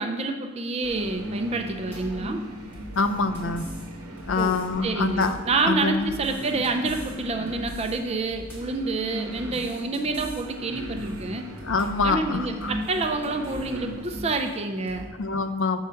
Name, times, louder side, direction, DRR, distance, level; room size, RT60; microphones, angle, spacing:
voice 1, 0.0-2.4 4.4-11.5 12.0-15.1, right 3 dB, 30° right, 5 dB, 0.4 m, -28 dB
sound 1, 0.8-14.3, equal, 75° right, 0.9 m, -38 dB
sound 2, 1.9-2.2 2.7-3.9 4.2-4.7 5.0-5.5 6.0-7.2 7.5-8.0 8.3-8.8 9.3-10.5 10.8-11.2 11.6-12.1 12.6-13.7 14.1-14.5 14.9-15.1, equal, 10° left, 1.6 m, -43 dB
voice 2, 3.0-3.7 4.3-5.4 5.6-6.1 11.6-12.7 15.2-15.8, left 4 dB, 60° left, 10 dB, 0.4 m, -25 dB
6.4 x 4.7 x 5.6 m, 1.5 s
head